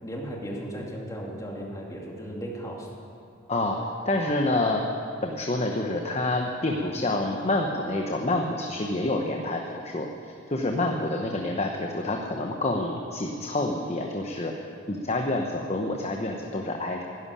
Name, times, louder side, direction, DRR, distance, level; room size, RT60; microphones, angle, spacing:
voice 1, 0.0-2.9, equal, 15° left, -2 dB, 2.4 m, -36 dB
voice 2, 3.5-4.8 5.2-14.5 14.9-17.0, left 2 dB, 30° left, 2 dB, 0.9 m, -28 dB
12.5 x 11.0 x 9.9 m, 2.6 s
head